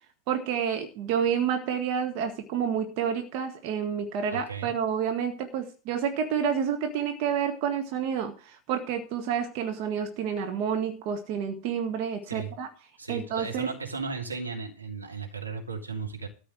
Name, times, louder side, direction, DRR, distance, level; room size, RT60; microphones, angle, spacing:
voice 1, 0.3-12.7 13.1-13.7, right 7 dB, 45° right, 5 dB, 1.7 m, -29 dB
voice 2, 4.3-4.7 12.3-12.5 13.0-16.3, right 4 dB, 80° right, 1 dB, 2.9 m, -35 dB
13.5 x 5.4 x 7.8 m, 0.37 s
figure-of-eight pair, 90°, 0 cm